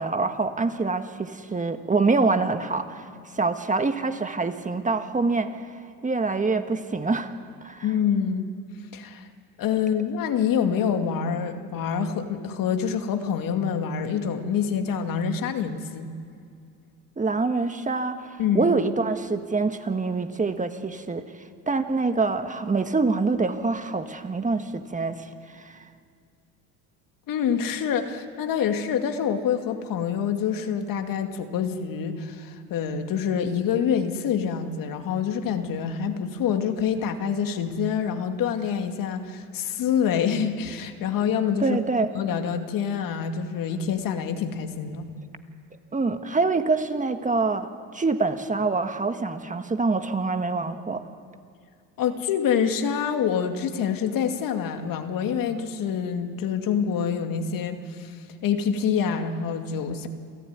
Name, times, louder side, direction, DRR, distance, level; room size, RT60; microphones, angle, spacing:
voice 1, 0.0-3.0 3.3-5.7 6.0-7.3 7.6-7.9 17.2-21.3 21.7-25.8 41.6-42.1 45.9-51.0, right 3 dB, 20° right, 8 dB, 1.6 m, -25 dB
voice 2, 7.8-8.5 8.9-9.3 9.6-16.1 18.4-18.7 27.3-41.8 42.1-45.1 52.0-58.2 58.4-60.1, left 7 dB, 60° left, 6 dB, 2.4 m, -26 dB
28.0 x 14.0 x 9.7 m, 2.3 s
supercardioid pair, 85°, 38 cm